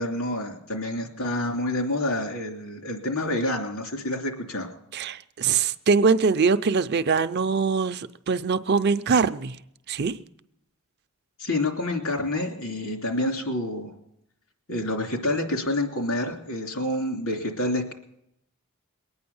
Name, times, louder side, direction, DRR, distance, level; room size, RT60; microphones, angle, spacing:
voice 1, 0.0-4.7 11.4-13.9 14.7-17.9, left 1 dB, 75° left, 3.0 m, -28 dB
voice 2, 4.9-9.6 9.9-10.2, right 5 dB, 50° right, 0.5 m, -23 dB
21.5 x 9.6 x 7.1 m
head